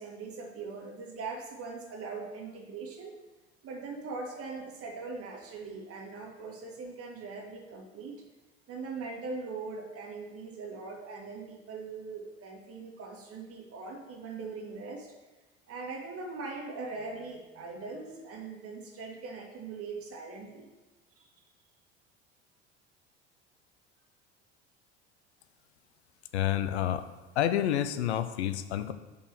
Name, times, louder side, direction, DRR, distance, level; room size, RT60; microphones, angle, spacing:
voice 1, 0.0-3.2 3.6-8.1 8.7-15.1 15.7-20.7 21.2-21.3, right 4 dB, 45° right, 0 dB, 2.0 m, -41 dB
voice 2, 26.3-27.1 27.4-28.9, left 11 dB, 80° left, 11 dB, 0.5 m, -29 dB
5.6 x 4.5 x 6.2 m, 1.2 s
hypercardioid pair, 70°, 33 cm